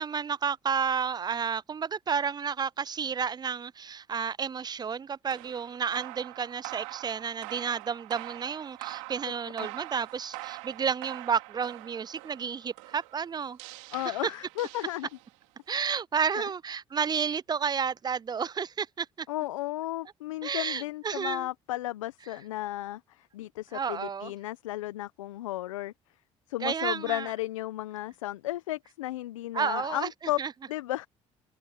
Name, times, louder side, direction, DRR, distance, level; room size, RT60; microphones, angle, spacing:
voice 1, 0.0-13.6 14.1-14.3 15.7-19.3 20.4-21.5 23.7-24.3 26.6-27.3 29.5-30.1 30.4-30.5, right 6 dB, 25° right, 0.4 m, -31 dB
sound 1, 5.3-15.4, right 28 dB, 80° right, 5.2 m, -44 dB
voice 2, 13.9-15.1 16.3-16.4 19.3-25.9 26.5-30.4 30.7-31.1, left 16 dB, 85° left, 1.0 m, -34 dB
hypercardioid pair, 55°, 16 cm